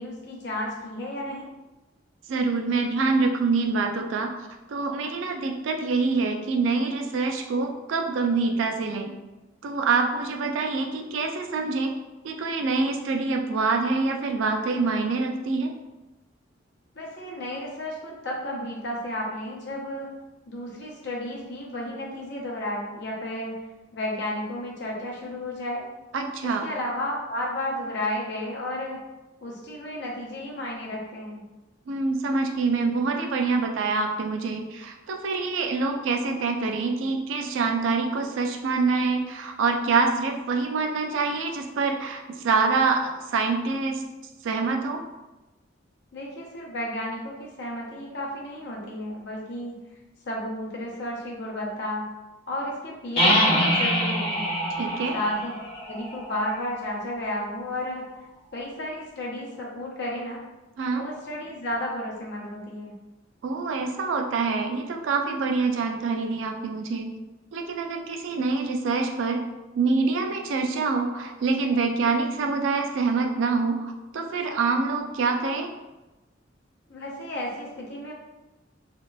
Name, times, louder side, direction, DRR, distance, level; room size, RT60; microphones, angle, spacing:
voice 1, 0.0-1.5 17.0-20.1 20.5-23.6 23.9-25.8 26.4-29.0 29.4-31.4 46.1-49.7 50.2-52.0 52.5-54.5 55.1-55.5 55.9-58.0 58.5-60.4 60.9-62.9 76.9-78.1, left 1 dB, 65° left, -3 dB, 0.6 m, -32 dB
voice 2, 2.3-4.3 4.7-9.1 9.6-11.9 12.2-15.7 26.1-26.7 31.9-44.0 44.4-45.0 54.8-55.2 60.8-61.0 63.4-67.1 67.5-69.4 69.7-75.7, right 4 dB, 90° right, 4 dB, 0.3 m, -25 dB
sound 1, 53.2-56.8, equal, 30° left, 0.8 m, -25 dB
2.7 x 2.1 x 2.2 m, 1.1 s
head